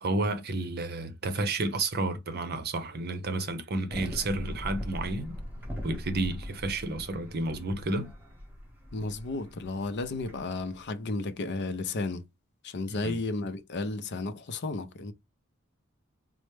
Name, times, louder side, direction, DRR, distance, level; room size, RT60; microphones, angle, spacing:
voice 1, 0.0-5.3 5.8-8.1 13.0-13.2, right 2 dB, 50° right, 0.7 m, -31 dB
sound 1, 3.9-10.9, equal, 10° right, 1.0 m, -41 dB
voice 2, 8.9-12.3 12.6-15.1, left 3 dB, 55° left, 0.5 m, -33 dB
4.3 x 2.1 x 3.2 m
head